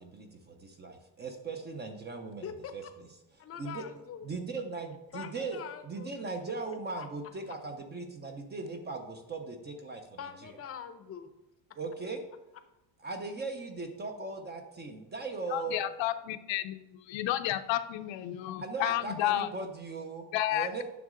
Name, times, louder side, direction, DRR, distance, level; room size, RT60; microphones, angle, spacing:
voice 1, 0.0-2.5 2.7-2.8 3.6-3.8 4.2-5.6 5.9-10.5 11.8-12.2 13.0-15.8 18.6-20.8, right 3 dB, 20° right, 5 dB, 0.5 m, -39 dB
voice 2, 2.4-2.9 3.4-4.3 5.1-6.1 6.9-7.1 7.5-7.6 10.2-11.3, left 8 dB, 30° left, 9 dB, 0.6 m, -43 dB
voice 3, 15.5-19.5 20.3-20.8, left 13 dB, 70° left, 10 dB, 0.6 m, -31 dB
9.3 x 6.3 x 3.7 m, 0.95 s
cardioid pair, 175°, 48 cm